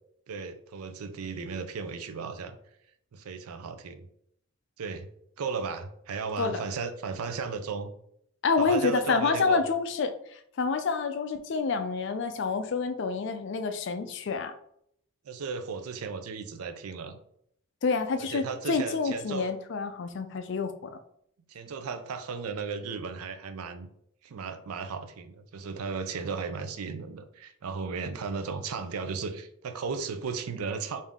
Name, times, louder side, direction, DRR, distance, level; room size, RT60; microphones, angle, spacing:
voice 1, 0.3-2.6 3.1-4.1 4.8-5.1 5.4-7.9 8.6-9.6 15.2-17.2 18.3-19.5 21.5-23.9 24.2-31.0, right 5 dB, 90° right, 8 dB, 0.5 m, -35 dB
voice 2, 8.4-14.5 17.8-21.0, left 4 dB, 55° left, 9 dB, 0.4 m, -28 dB
3.6 x 2.7 x 3.5 m, 0.70 s
head